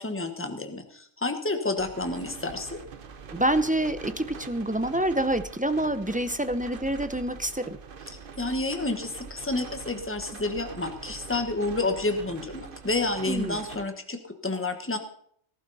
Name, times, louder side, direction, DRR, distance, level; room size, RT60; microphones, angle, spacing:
voice 1, 0.0-2.8 8.4-15.0, left 2 dB, 10° left, 6 dB, 1.3 m, -30 dB
sound 1, 1.8-13.9, right 6 dB, 50° right, 1.0 m, -43 dB
voice 2, 3.3-7.8 13.3-13.6, right 1 dB, 10° right, 11 dB, 0.4 m, -27 dB
18.5 x 12.0 x 4.2 m, 0.63 s
omnidirectional pair, 1.3 m